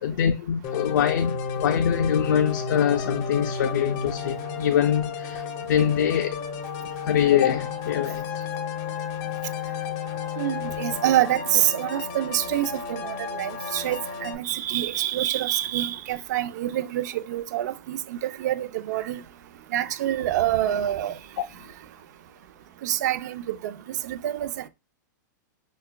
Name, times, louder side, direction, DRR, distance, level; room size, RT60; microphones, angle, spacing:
voice 1, 0.0-6.4 6.8-8.5, left 9 dB, 75° left, 0.4 m, -24 dB
sound 1, 0.6-14.3, left 6 dB, 40° left, 0.6 m, -32 dB
voice 2, 10.4-19.2 19.7-21.2 22.8-23.7 24.0-24.7, right 12 dB, 65° right, 0.5 m, -26 dB
5.5 x 2.2 x 2.2 m
hypercardioid pair, 135°, 10 cm